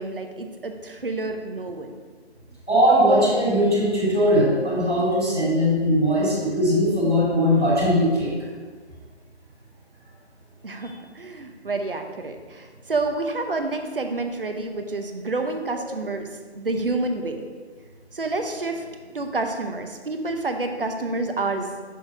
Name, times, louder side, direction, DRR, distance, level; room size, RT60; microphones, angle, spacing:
voice 1, 0.0-1.9 10.6-16.3 16.5-17.4 18.1-18.8 19.1-21.7, right 3 dB, 50° right, 5 dB, 0.8 m, -28 dB
voice 2, 2.7-8.3 10.8-10.9, equal, 5° left, -24 dB, 1.3 m, -20 dB
6.3 x 3.9 x 5.7 m, 1.5 s
figure-of-eight pair, 170°, 35 cm